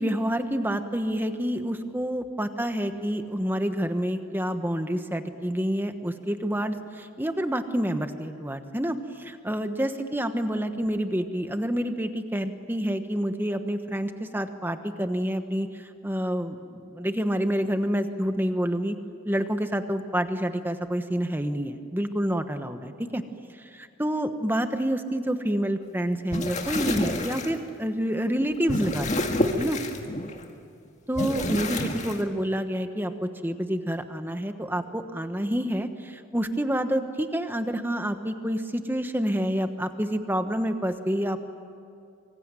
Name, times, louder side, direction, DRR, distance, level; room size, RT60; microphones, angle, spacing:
voice 1, 0.0-19.0 19.2-23.2 23.6-29.8 31.1-41.4, equal, 10° right, 8 dB, 1.2 m, -28 dB
sound 1, 26.2-27.5 28.3-30.4 31.1-32.2, left 1 dB, 35° left, 1.9 m, -28 dB
25.5 x 24.5 x 9.1 m, 2.5 s
head